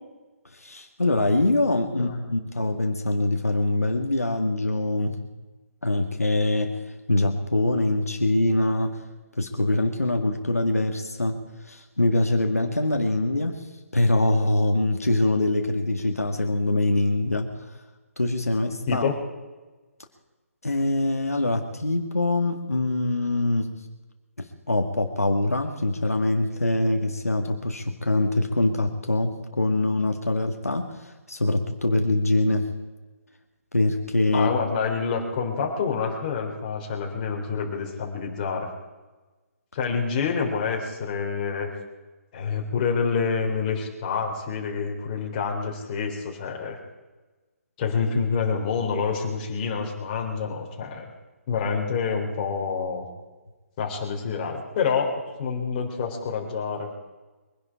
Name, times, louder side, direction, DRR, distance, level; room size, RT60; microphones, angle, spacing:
voice 1, 0.5-5.2 5.8-6.8 7.1-9.0 9.4-13.6 13.9-17.5 18.2-19.1 20.6-23.7 24.4-32.7 33.7-34.5, left 2 dB, 85° left, 4 dB, 1.8 m, -24 dB
voice 2, 1.9-2.3 18.9-19.1 34.3-38.7 39.7-41.7 42.3-46.8 47.8-51.1 51.5-53.1 53.8-55.1 55.4-56.9, left 5 dB, 30° left, 1 dB, 3.6 m, -27 dB
23.5 x 11.0 x 4.8 m, 1.2 s
figure-of-eight pair, 140°, 8 cm